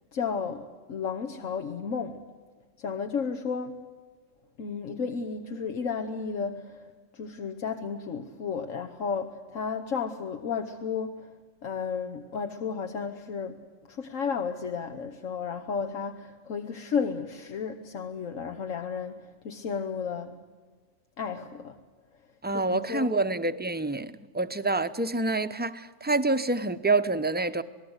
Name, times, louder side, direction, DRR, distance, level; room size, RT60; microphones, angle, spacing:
voice 1, 0.1-2.2 2.8-3.8 4.6-6.8 7.1-11.3 11.6-13.6 13.9-20.4 21.2-21.8 22.5-23.1, left 6 dB, 85° left, 1.5 m, -33 dB
voice 2, 22.4-27.6, right 3 dB, 10° right, 0.6 m, -27 dB
27.0 x 19.0 x 8.0 m
omnidirectional pair, 1.3 m